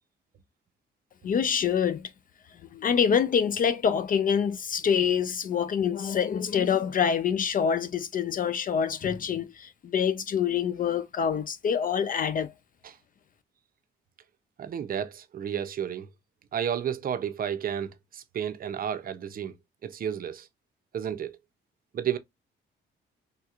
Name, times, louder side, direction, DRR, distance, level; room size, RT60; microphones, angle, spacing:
voice 1, 1.2-2.1 2.7-12.5, left 7 dB, 45° left, 0.4 m, -26 dB
voice 2, 14.6-16.1 16.5-19.5 19.8-20.5 20.9-21.4 21.9-22.2, right 9 dB, 45° right, 0.5 m, -32 dB
3.5 x 2.8 x 2.4 m
cardioid pair, 90°, 20 cm